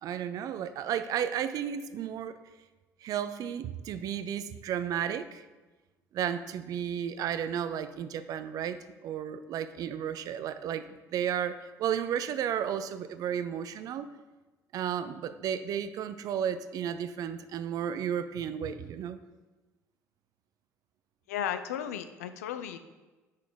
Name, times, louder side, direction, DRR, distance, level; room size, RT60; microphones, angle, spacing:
voice 1, 0.0-2.4 3.0-5.4 6.1-10.8 11.1-14.1 14.7-19.2, right 9 dB, 45° right, 12 dB, 0.4 m, -33 dB
voice 2, 21.3-22.8, left 9 dB, 70° left, 11 dB, 0.3 m, -34 dB
5.6 x 3.9 x 4.7 m, 1.2 s
figure-of-eight pair, 55°, 8 cm